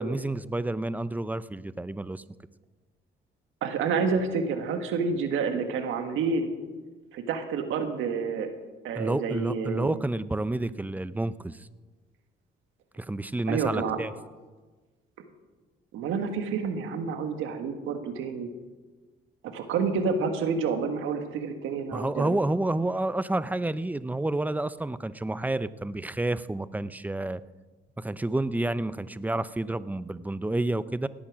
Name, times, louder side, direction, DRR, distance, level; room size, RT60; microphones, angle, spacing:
voice 1, 0.0-2.2 9.0-11.7 13.0-14.1 21.9-27.4 28.0-31.1, right 2 dB, 10° right, 16 dB, 0.5 m, -29 dB
voice 2, 3.6-6.5 7.1-8.5 8.8-10.0 13.5-14.0 15.9-18.5 19.4-22.4, right 5 dB, 85° right, 6 dB, 1.6 m, -29 dB
18.0 x 8.8 x 6.1 m, 1.3 s
cardioid pair, 90°, 20 cm